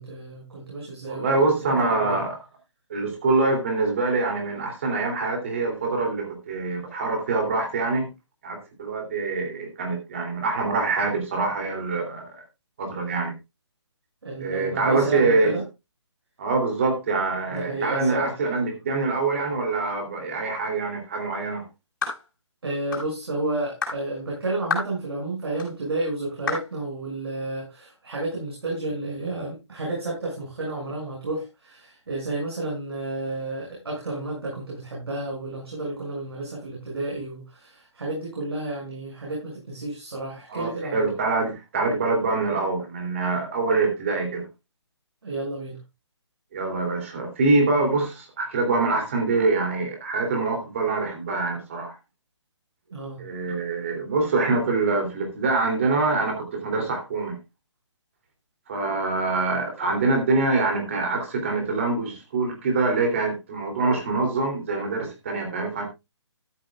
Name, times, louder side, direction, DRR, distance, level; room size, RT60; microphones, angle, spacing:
voice 1, 0.0-2.2 14.2-15.6 17.5-18.3 22.6-41.1 45.2-45.8 52.9-53.2, right 2 dB, 55° right, 6.2 m, -31 dB
voice 2, 1.1-2.4 2.9-8.1 8.4-12.4 12.8-13.3 14.4-15.5 16.4-21.6 40.5-44.5 46.5-52.0 53.2-57.4 58.7-65.8, right 3 dB, 25° right, 3.0 m, -25 dB
sound 1, 22.0-22.2 22.9-23.1 23.8-24.0 24.7-24.9 25.6-25.7 26.5-26.7, left 4 dB, 40° left, 6.7 m, -28 dB
13.5 x 11.5 x 2.4 m
hypercardioid pair, 175°, 15 cm